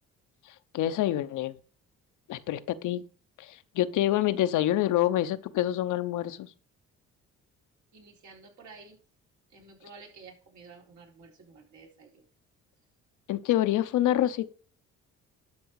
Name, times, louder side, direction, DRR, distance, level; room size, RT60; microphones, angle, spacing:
voice 1, 0.7-1.5 2.3-3.0 3.4-6.5 13.3-14.5, left 13 dB, 80° left, 0.8 m, -27 dB
voice 2, 7.9-9.0 9.5-12.3, right 4 dB, 70° right, 4.0 m, -51 dB
12.0 x 6.2 x 4.8 m
cardioid pair, 90°, 30 cm